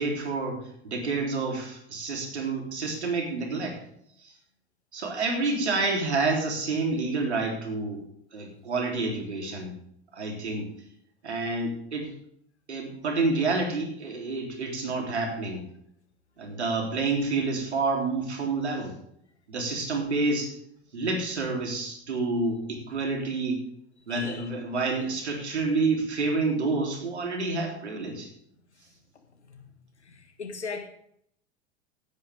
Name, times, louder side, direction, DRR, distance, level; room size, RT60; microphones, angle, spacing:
voice 1, 0.0-3.8 4.2-4.3 4.9-8.0 8.3-9.7 10.1-10.7 11.2-12.1 12.7-15.6 16.4-19.0 19.5-20.5 20.9-23.6 24.1-28.3, right 3 dB, 80° right, 1 dB, 3.5 m, -28 dB
voice 2, 24.1-24.5 30.0-30.9, left 4 dB, 85° left, 5 dB, 2.0 m, -38 dB
17.0 x 9.5 x 3.6 m, 0.69 s
figure-of-eight pair, 85°, 33 cm